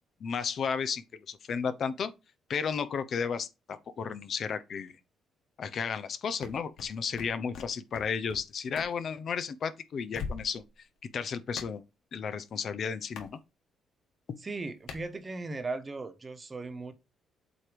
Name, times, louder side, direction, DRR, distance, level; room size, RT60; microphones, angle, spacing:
voice 1, 0.2-2.1 2.5-5.0 5.6-10.6 11.1-11.8 12.1-13.4, left 6 dB, 55° left, 0.8 m, -33 dB
sound 1, 6.4-8.4 8.7-8.9 10.1-10.7 11.6-11.7 13.2-13.3 14.9-15.1, left 5 dB, 80° left, 1.5 m, -40 dB
voice 2, 14.4-16.9, right 3 dB, 30° right, 1.2 m, -37 dB
8.0 x 3.0 x 5.0 m
cardioid pair, 90°, 0 cm